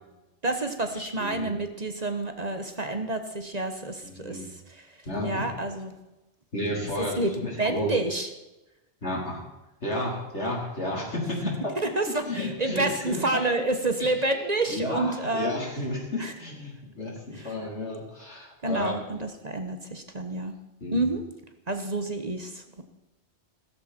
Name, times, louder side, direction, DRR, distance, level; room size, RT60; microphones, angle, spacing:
voice 1, 0.4-4.4 4.7-4.8 5.2-5.9 7.0-7.3 7.6-8.3 11.9-15.5 16.2-16.3 17.4-17.5 18.6-20.5 20.9-21.2 21.7-22.8, right 2 dB, 35° right, 7 dB, 1.3 m, -29 dB
voice 2, 0.9-1.5 4.0-4.5 5.0-5.5 6.5-7.9 9.0-9.4 9.8-11.7 12.1-13.4 14.0-14.3 14.7-19.2 20.8-21.0, left 1 dB, 80° left, -3 dB, 4.6 m, -32 dB
16.5 x 14.0 x 4.5 m, 1.0 s
omnidirectional pair, 1.2 m